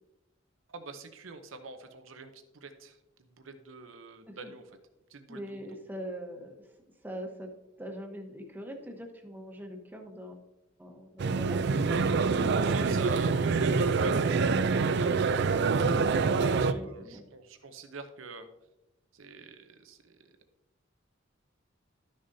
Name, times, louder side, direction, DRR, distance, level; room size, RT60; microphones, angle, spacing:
voice 1, 0.7-3.0 3.4-4.6 5.1-5.6 11.9-15.5 16.7-18.5 19.1-20.2, right 3 dB, 85° right, 8 dB, 0.7 m, -44 dB
voice 2, 5.3-6.6 7.0-7.5 7.8-10.4 10.8-11.6 16.4-17.2, equal, 10° right, 2 dB, 1.0 m, -42 dB
sound 1, 11.2-16.7, right 4 dB, 60° right, 0.4 m, -26 dB
12.5 x 6.5 x 2.7 m, 0.96 s
head